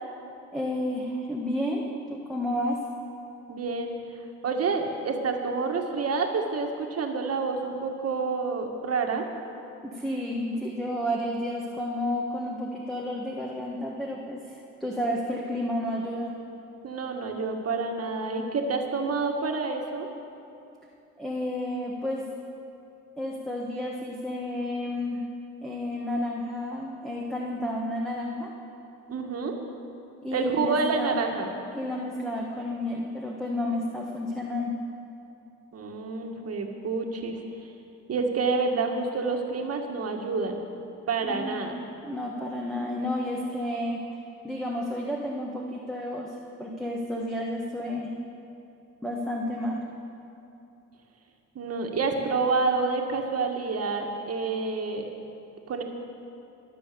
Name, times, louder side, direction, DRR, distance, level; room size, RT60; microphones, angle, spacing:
voice 1, 0.5-1.8 2.1-2.8 9.8-16.3 21.2-22.2 23.2-25.2 25.6-28.5 30.2-31.2 31.7-34.7 41.2-41.7 42.0-44.0 44.4-46.3 46.6-48.1 49.0-49.8, left 1 dB, ahead, -3 dB, 1.6 m, -31 dB
voice 2, 3.5-3.9 4.4-9.2 16.8-20.1 29.1-29.6 30.3-31.5 35.7-37.4 38.1-40.6 41.1-41.8 51.6-55.1 55.7-55.8, right 4 dB, 55° right, 3 dB, 1.9 m, -28 dB
21.5 x 7.6 x 6.9 m, 2.8 s
cardioid pair, 90°, 30 cm